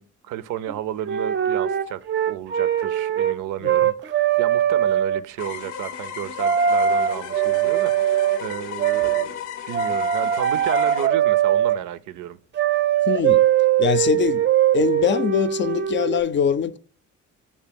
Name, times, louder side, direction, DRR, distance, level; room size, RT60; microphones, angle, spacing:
voice 1, 0.0-12.4, right 12 dB, 85° right, 0.5 m, -33 dB
sound 1, 0.7-0.8 1.0-3.4 3.6-5.2 6.4-8.4 8.8-9.3 9.7-11.8 12.5-16.2, right 10 dB, 40° right, 0.5 m, -21 dB
sound 2, 5.4-11.1, left 8 dB, 90° left, 0.7 m, -35 dB
voice 2, 13.1-13.4 13.8-14.4 14.7-16.8, left 8 dB, 40° left, 0.4 m, -22 dB
6.9 x 2.7 x 5.1 m
cardioid pair, 90°, 30 cm